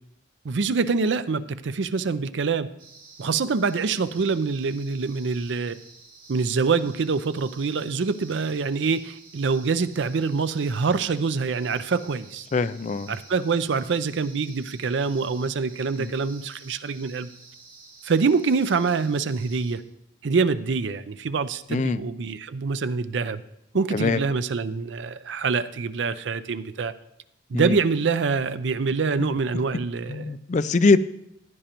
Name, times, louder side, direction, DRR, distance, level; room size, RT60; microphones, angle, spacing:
voice 1, 0.4-2.7 3.2-5.8 6.3-12.5 13.1-17.3 18.0-19.8 20.2-23.4 23.7-26.9 27.5-30.3, right 4 dB, 75° right, 13 dB, 0.5 m, -25 dB
sound 1, 2.8-19.8, right 4 dB, 50° right, 2.3 m, -50 dB
voice 2, 12.5-13.2 16.0-16.1 21.7-22.0 23.9-24.2 27.5-27.8 30.1-31.0, left 3 dB, 40° left, 14 dB, 0.4 m, -22 dB
15.5 x 9.9 x 3.0 m, 0.80 s
head